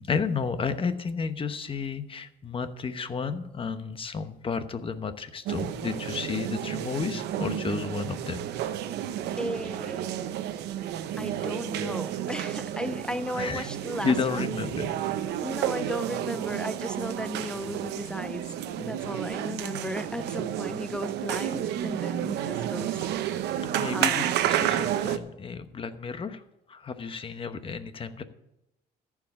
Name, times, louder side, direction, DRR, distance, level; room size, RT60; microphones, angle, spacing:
voice 1, 0.0-8.4 13.4-13.7 14.0-14.9 23.8-26.4 26.7-28.2, left 5 dB, 30° left, 10 dB, 1.0 m, -32 dB
sound 1, 5.5-25.2, right 11 dB, 80° right, 0.8 m, -31 dB
voice 2, 9.4-10.1 11.2-14.6 15.4-23.1 23.9-24.3, equal, 5° left, 12 dB, 0.4 m, -35 dB
14.5 x 4.9 x 8.6 m, 0.86 s
cardioid pair, 110°, 17 cm